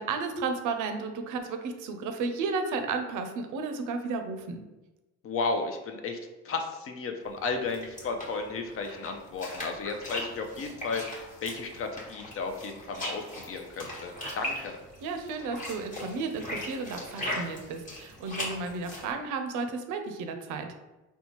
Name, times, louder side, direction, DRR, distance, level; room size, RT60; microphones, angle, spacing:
voice 1, 0.0-4.7 15.0-20.7, right 4 dB, 70° right, 6 dB, 0.5 m, -33 dB
voice 2, 5.2-6.2 6.4-14.8, left 4 dB, 45° left, 4 dB, 0.5 m, -34 dB
sound 1, 7.3-19.1, left 1 dB, 25° left, 1.2 m, -39 dB
4.1 x 2.2 x 2.9 m, 1.1 s
cardioid pair, 110°, 32 cm